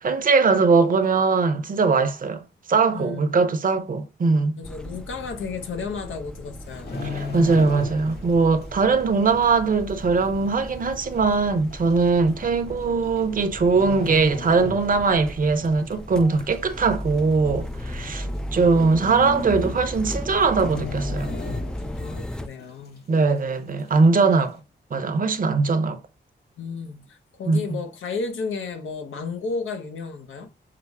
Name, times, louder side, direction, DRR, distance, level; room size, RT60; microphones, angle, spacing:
voice 1, 0.0-2.4 2.7-4.6 7.0-21.3 23.1-24.6 24.9-26.0 27.5-27.6, right 4 dB, 45° right, 0.7 m, -21 dB
voice 2, 2.9-3.5 4.6-7.0 18.2-18.5 21.8-23.1 26.6-30.5, left 4 dB, 90° left, 0.8 m, -33 dB
sound 1, 4.6-22.5, left 1 dB, 5° left, 0.3 m, -35 dB
sound 2, 6.6-8.4 8.6-8.9 9.5-9.6 10.4-10.5 10.8-10.9 11.7-11.9 13.0-13.4 13.7-15.3 15.6-15.8 16.3-16.9 17.2-17.3 17.5-17.6 18.0-18.1 19.1-19.2 19.5-19.8 20.0-20.2 20.5-22.2 22.6-22.7, left 4 dB, 55° left, 1.6 m, -34 dB
5.7 x 2.0 x 3.5 m
cardioid pair, 70°, 20 cm